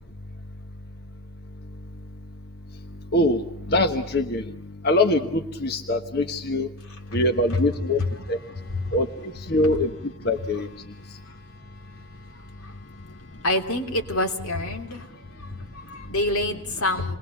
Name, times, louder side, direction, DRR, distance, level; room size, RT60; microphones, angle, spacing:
voice 1, 3.1-4.5 4.8-6.7 7.1-8.0 8.3-8.4 8.9-9.9 10.2-10.7, left 1 dB, 45° left, 6 dB, 1.2 m, -23 dB
voice 2, 8.5-9.0 11.2-11.4 11.9-17.2, left 2 dB, 85° left, 3 dB, 3.3 m, -28 dB
28.5 x 21.0 x 7.0 m, 0.77 s
head